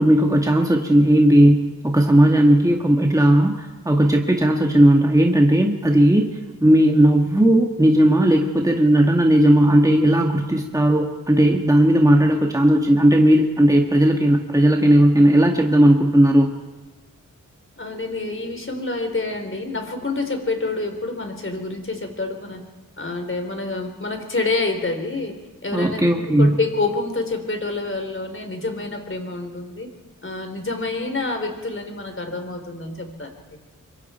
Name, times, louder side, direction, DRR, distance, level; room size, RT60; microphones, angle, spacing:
voice 1, 0.0-6.3 6.6-16.5 25.7-26.5, right 1 dB, 10° right, 1 dB, 2.1 m, -16 dB
voice 2, 17.8-22.6 23.0-25.4 25.6-29.9 30.2-33.3, left 3 dB, 40° left, 5 dB, 4.2 m, -27 dB
25.5 x 23.5 x 4.6 m, 1.2 s
cardioid pair, 65°, 32 cm